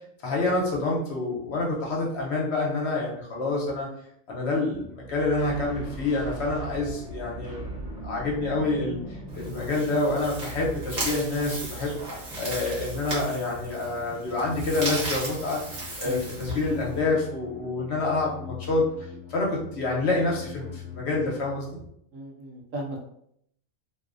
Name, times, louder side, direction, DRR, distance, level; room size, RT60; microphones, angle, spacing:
voice 1, 0.2-3.9 4.3-7.6 8.0-9.0 9.3-11.9 12.3-15.6 16.0-18.8 19.3-21.8, left 2 dB, 60° left, -2 dB, 0.9 m, -27 dB
sound 1, 4.8-21.9, left 1 dB, 10° right, 0.5 m, -43 dB
sound 2, 5.4-10.5, equal, 30° left, 1.0 m, -40 dB
sound 3, 9.3-17.0, right 1 dB, 45° right, 0.7 m, -36 dB
voice 2, 16.0-16.4 22.1-23.1, right 1 dB, 75° right, -1 dB, 1.0 m, -36 dB
2.5 x 2.0 x 2.4 m, 0.70 s
omnidirectional pair, 1.4 m